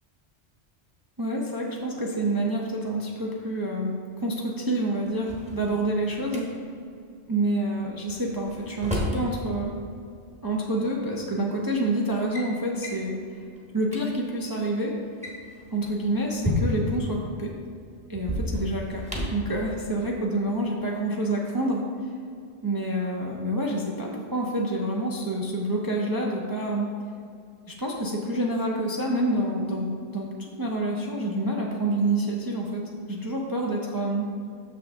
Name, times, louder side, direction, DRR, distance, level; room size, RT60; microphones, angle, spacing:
voice 1, 1.2-6.5 7.3-9.7 10.4-13.4 13.7-14.9 15.7-17.5 18.1-19.0 19.3-21.8 22.6-26.9 27.7-32.8 33.1-34.3, right 1 dB, 30° right, -2 dB, 0.4 m, -28 dB
Drawer open or close, 5.1-6.4 8.1-9.3 10.5-10.6 11.5-11.7 12.0-12.5 12.8-13.1 13.6-13.7 13.8-14.0 15.0-17.0 18.1-19.5, left 1 dB, 5° right, 0.9 m, -31 dB
6.6 x 6.1 x 3.5 m, 2.3 s
omnidirectional pair, 1.2 m